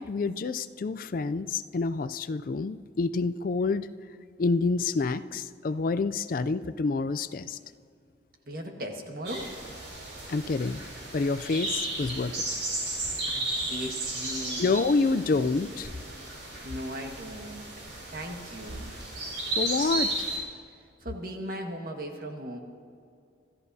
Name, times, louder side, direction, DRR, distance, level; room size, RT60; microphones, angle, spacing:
voice 1, 0.0-3.9 4.4-7.6 10.3-10.8 11.1-12.4 14.6-15.9 19.6-20.1, left 3 dB, 45° left, 13 dB, 0.4 m, -28 dB
voice 2, 8.5-9.5 13.3-14.7 16.6-17.7 18.1-18.9 21.0-22.6, equal, 50° right, 3 dB, 1.6 m, -38 dB
sound 1, 9.3-20.4, right 2 dB, 70° right, 4.6 m, -34 dB
26.5 x 14.0 x 2.7 m, 2.4 s
head